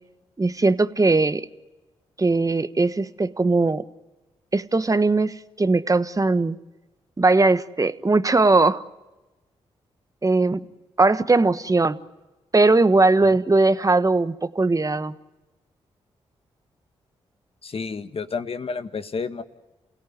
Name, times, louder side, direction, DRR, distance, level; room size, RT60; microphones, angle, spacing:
voice 1, 0.4-1.5 2.2-3.8 4.5-6.6 7.2-8.8 10.2-10.6 11.0-12.0 12.5-15.1, right 3 dB, 30° right, 12 dB, 1.3 m, -19 dB
voice 2, 17.6-19.4, left 5 dB, 50° left, 9 dB, 1.7 m, -30 dB
28.5 x 17.5 x 9.5 m, 1.1 s
supercardioid pair, 45°, 12 cm